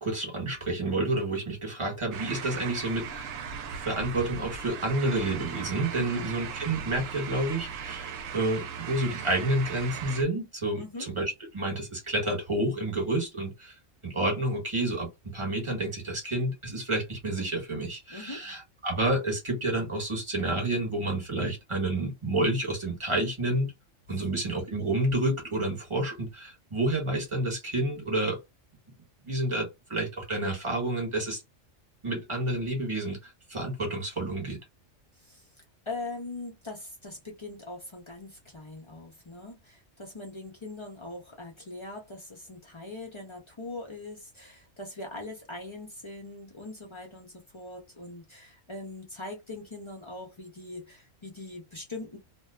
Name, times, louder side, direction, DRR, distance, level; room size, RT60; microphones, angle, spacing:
voice 1, 0.0-3.3 3.7-13.7 14.0-23.7 24.1-28.4 29.3-31.4 32.0-34.6, right 2 dB, 25° right, 1.1 m, -29 dB
sound 1, 2.1-10.2, right 7 dB, 80° right, 0.9 m, -38 dB
voice 2, 10.8-11.1 18.1-18.5 24.1-24.3 35.2-35.5 35.9-52.2, left 2 dB, 40° left, 0.4 m, -41 dB
2.6 x 2.2 x 2.2 m
omnidirectional pair, 1.3 m